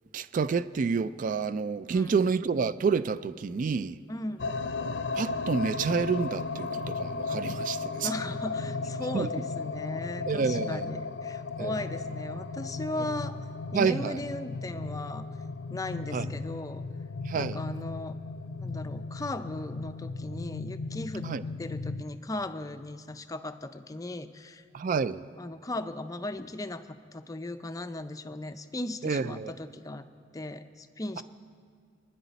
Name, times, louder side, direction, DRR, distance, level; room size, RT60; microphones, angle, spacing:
voice 1, 0.1-4.0 5.2-8.1 9.1-9.3 10.3-10.9 11.6-11.7 13.7-14.2 16.1-16.3 17.2-17.6 21.2-21.4 24.7-25.3 29.0-29.5 31.2-31.3, right 5 dB, 45° right, 0.3 m, -29 dB
voice 2, 1.9-2.2 4.1-4.5 8.0-13.4 13.7-15.3 15.7-16.8 17.3-18.2 18.6-21.3 21.6-24.6 25.4-30.1 30.3-31.2, left 2 dB, 20° left, 0.5 m, -37 dB
sound 1, 4.4-22.0, left 3 dB, 70° left, 0.5 m, -35 dB
23.5 x 10.0 x 4.0 m
head